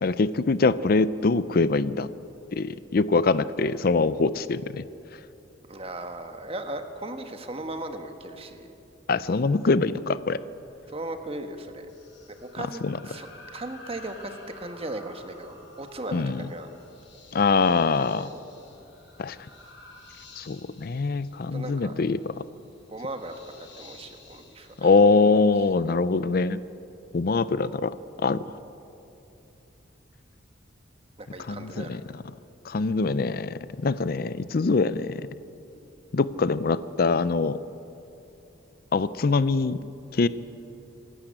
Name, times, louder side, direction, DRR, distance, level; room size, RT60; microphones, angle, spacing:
voice 1, 0.0-2.1 2.5-4.9 9.1-10.4 12.8-13.0 16.1-16.5 17.3-18.3 19.2-19.4 20.4-22.5 24.8-26.6 27.1-28.5 31.4-32.2 32.6-35.3 36.1-37.6 38.9-39.8 40.1-40.3, left 4 dB, 50° left, 15 dB, 0.5 m, -23 dB
voice 2, 5.7-8.7 10.9-11.9 12.5-16.7 18.2-18.4 21.5-21.9 22.9-24.9 31.2-32.0, right 2 dB, 30° right, 6 dB, 1.4 m, -37 dB
sound 1, 11.9-25.8, left 3 dB, 65° left, 6.0 m, -51 dB
26.5 x 12.0 x 8.8 m, 2.8 s
head